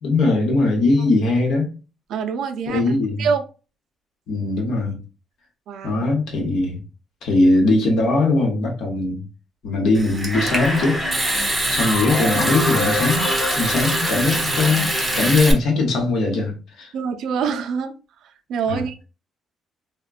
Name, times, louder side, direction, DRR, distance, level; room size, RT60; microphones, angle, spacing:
voice 1, 0.0-1.7 2.7-3.3 4.3-5.0 5.8-6.8 7.2-9.2 9.6-11.0 11.7-13.3 13.5-14.9 15.2-16.9 18.7-18.8, left 2 dB, 65° left, 0.8 m, -20 dB
voice 2, 2.1-2.9 3.2-3.4 5.7-6.1 16.9-17.9 18.5-19.0, right 6 dB, 65° right, 0.4 m, -25 dB
Water tap faucet / Sink (filling or washing) / Trickle dribble, 9.9-15.5, right 1 dB, 10° right, 0.6 m, -25 dB
sound 1, 10.3-15.4, left 1 dB, 25° left, 0.8 m, -26 dB
3.5 x 2.1 x 2.3 m
cardioid pair, 150°, 0 cm